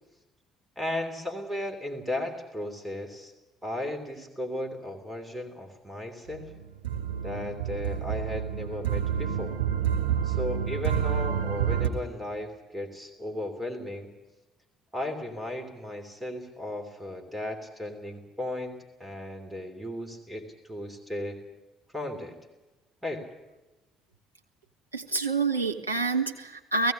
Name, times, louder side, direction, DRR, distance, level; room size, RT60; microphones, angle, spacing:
voice 1, 0.8-3.3 3.6-6.5 7.2-9.6 10.2-14.1 14.9-21.4 21.9-22.4 23.0-23.3, left 1 dB, 10° right, 4 dB, 3.1 m, -35 dB
sound 1, 6.3-11.9, right 9 dB, 70° right, 3.0 m, -29 dB
voice 2, 24.9-26.9, right 4 dB, 85° right, 2 dB, 1.4 m, -27 dB
17.5 x 16.0 x 9.5 m, 1.1 s
figure-of-eight pair, 50°, 0 cm